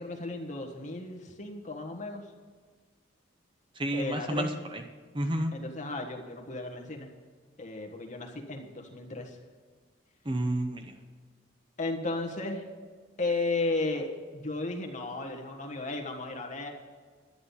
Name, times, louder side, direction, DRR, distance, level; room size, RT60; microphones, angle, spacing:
voice 1, 0.0-2.3 3.9-4.5 5.5-7.1 7.6-9.4 11.8-12.6 13.2-16.7, left 2 dB, 40° left, 2 dB, 1.5 m, -34 dB
voice 2, 3.8-4.8 5.1-5.5 10.2-10.9, right 1 dB, 25° right, 5 dB, 0.7 m, -30 dB
11.0 x 9.9 x 5.5 m, 1.5 s
head